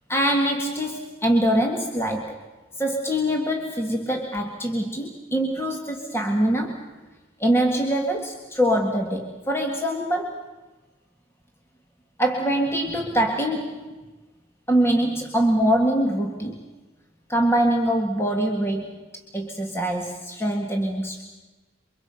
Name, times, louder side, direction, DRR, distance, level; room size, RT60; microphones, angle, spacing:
voice 1, 0.1-2.4 2.8-6.9 7.4-10.4 12.2-13.9 14.7-16.6 17.3-19.0 19.3-21.2, right 1 dB, 10° left, 2 dB, 1.8 m, -24 dB
29.0 x 24.5 x 5.7 m, 1.2 s
head